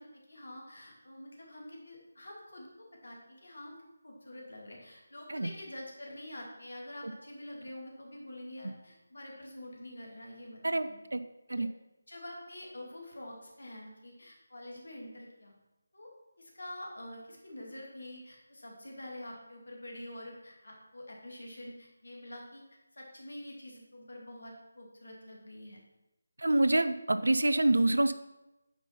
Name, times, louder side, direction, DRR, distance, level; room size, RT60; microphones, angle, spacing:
voice 1, 0.0-3.8 4.0-11.0 11.5-11.6 12.1-15.5 15.9-16.1 16.4-22.6 22.9-25.8, left 1 dB, 65° left, 0 dB, 2.3 m, -47 dB
voice 2, 10.6-11.2 11.5-11.7 26.4-28.1, right 2 dB, 65° right, 11 dB, 0.5 m, -26 dB
8.9 x 5.5 x 4.3 m, 0.98 s
figure-of-eight pair, 155°, 0 cm